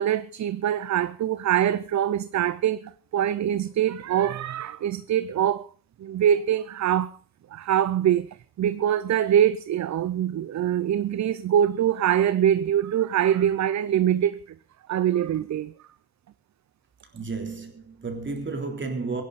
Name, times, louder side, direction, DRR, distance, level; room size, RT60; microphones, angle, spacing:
voice 1, 0.0-5.7 6.0-7.2 7.5-14.4 14.9-15.7, right 10 dB, 55° right, 0.6 m, -24 dB
voice 2, 17.1-19.2, right 4 dB, 35° right, 3.6 m, -32 dB
23.0 x 11.0 x 4.1 m
wide cardioid pair, 150°, 35 cm